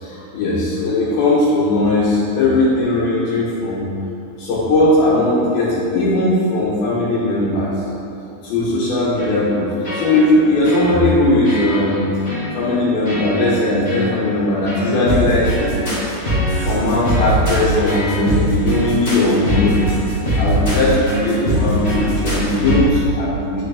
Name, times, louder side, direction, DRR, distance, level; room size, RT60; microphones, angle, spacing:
voice 1, 0.0-3.8 4.4-7.9 8.4-12.1 12.5-15.7 16.5-19.9 20.4-23.6, left 2 dB, 80° left, -8 dB, 3.1 m, -18 dB
sound 1, 9.2-9.5 9.8-10.4 10.6-11.1 11.4-11.9 12.2-12.5 13.0-13.5 13.8-14.1 14.7-22.8, right 1 dB, 30° left, 1.2 m, -22 dB
8.1 x 6.4 x 3.4 m, 2.8 s
omnidirectional pair, 4.2 m